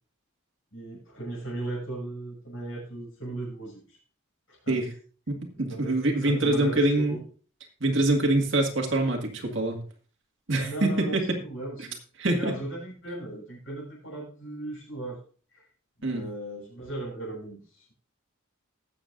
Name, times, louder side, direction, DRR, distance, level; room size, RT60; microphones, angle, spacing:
voice 1, 0.7-4.0 4.5-4.9 5.7-7.2 10.6-12.0 12.3-15.2 15.5-15.6 16.0-17.9, right 2 dB, 60° left, -7 dB, 6.6 m, -37 dB
voice 2, 5.3-7.2 7.8-9.8 10.5-11.4 11.8-11.9 12.2-12.5 16.0-16.2, right 2 dB, 60° right, 2 dB, 2.0 m, -25 dB
20.0 x 7.8 x 2.6 m, 0.40 s
head